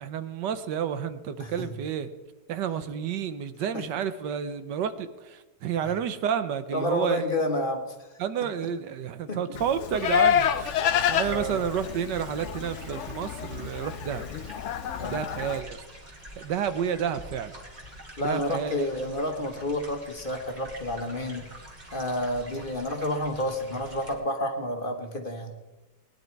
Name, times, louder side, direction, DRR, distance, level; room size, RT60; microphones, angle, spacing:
voice 1, 0.0-2.1 2.5-7.2 8.2-10.7 11.1-14.2 15.1-15.8 16.4-17.5 18.2-18.9, right 8 dB, 80° right, 11 dB, 1.5 m, -30 dB
voice 2, 1.4-1.7 3.7-3.9 5.8-5.9 6.7-8.1 8.4-8.5 9.3-9.6 11.3-11.6 15.0-15.2 18.2-21.5 21.9-25.5, left 1 dB, 30° left, 5 dB, 1.4 m, -30 dB
Livestock farm animals working animals, 9.5-15.6, left 9 dB, 65° left, 0.7 m, -28 dB
sound 1, 10.4-24.2, right 1 dB, 35° right, 2.7 m, -46 dB
20.0 x 11.0 x 4.6 m, 1.1 s
omnidirectional pair, 1.9 m